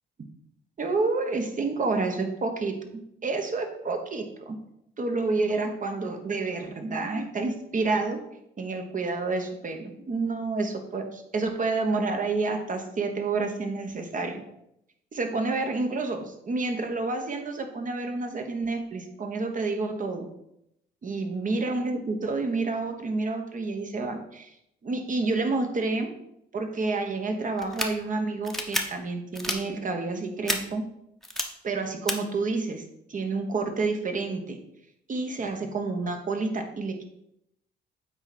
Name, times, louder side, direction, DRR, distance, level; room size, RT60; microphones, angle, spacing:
voice 1, 0.8-2.7 3.2-4.6 5.0-8.2 8.6-14.4 15.1-20.3 21.0-24.5 24.8-26.1 26.5-30.8 31.6-32.8 33.1-34.6 35.1-37.0, right 3 dB, 40° right, 5 dB, 1.3 m, -29 dB
sound 1, 27.6-27.9 28.4-28.8 29.3-29.6 30.5-30.6 31.2-31.4 32.1-32.2, left 1 dB, ahead, 1.0 m, -28 dB
7.9 x 4.5 x 4.2 m, 0.79 s
cardioid pair, 90°, 20 cm